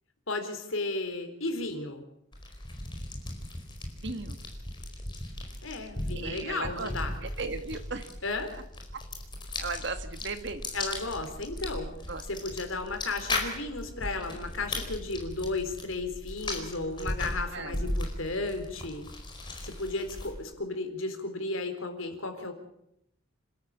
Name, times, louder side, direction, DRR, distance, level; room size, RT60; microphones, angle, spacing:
voice 1, 0.3-2.0 5.6-7.2 8.2-8.5 10.7-11.9 12.2-19.1 19.6-22.5, left 2 dB, 85° left, 6 dB, 4.0 m, -34 dB
sound 1, 2.3-20.5, left 1 dB, 25° left, 4.6 m, -37 dB
voice 2, 4.0-4.4 6.1-6.9 7.2-8.1 9.6-10.6 12.1-12.2 17.5-17.8, right 3 dB, 60° right, 8 dB, 2.0 m, -36 dB
27.5 x 13.0 x 8.5 m, 0.77 s
head